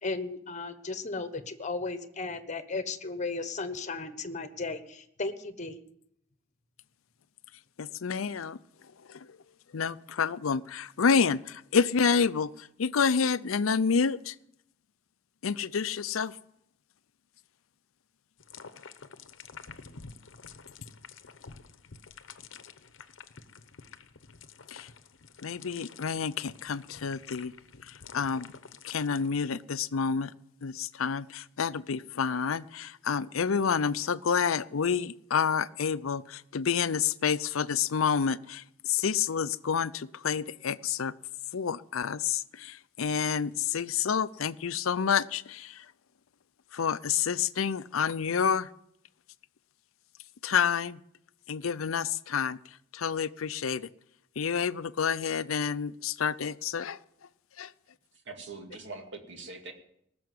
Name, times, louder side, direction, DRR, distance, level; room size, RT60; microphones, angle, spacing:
voice 1, 0.0-5.8, left 3 dB, 35° left, 10 dB, 1.2 m, -35 dB
voice 2, 7.8-8.6 9.1-9.3 9.7-14.4 15.4-16.4 24.7-24.9 25.4-27.5 27.9-28.5 28.8-30.3 30.6-41.1 41.5-45.9 46.7-48.7 50.4-51.0 51.5-52.6 52.9-53.9 54.4-57.0 57.6-57.7, left 6 dB, 85° left, 16 dB, 0.6 m, -29 dB
sound 1, 18.4-29.3, left 5 dB, 65° left, 0.9 m, -49 dB
voice 3, 58.3-59.7, right 3 dB, 60° right, 4 dB, 2.4 m, -42 dB
19.0 x 7.0 x 9.5 m, 0.75 s
head